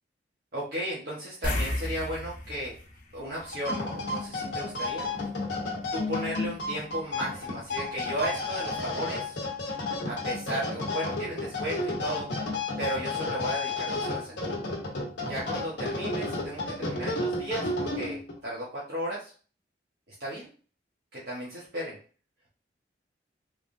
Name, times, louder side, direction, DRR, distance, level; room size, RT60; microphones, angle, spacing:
voice 1, 0.5-2.7 3.1-5.1 5.9-9.4 10.1-12.3 12.8-14.5 15.2-19.3 20.2-20.5 21.1-22.0, right 1 dB, 60° right, -7 dB, 1.1 m, -35 dB
sound 1, 1.4-4.2 4.5-4.7 7.6-7.7 8.0-8.1, left 1 dB, 50° left, 0.7 m, -34 dB
sound 2, 3.4-18.4, left 2 dB, 75° left, 0.9 m, -32 dB
3.3 x 3.2 x 2.6 m, 0.39 s
head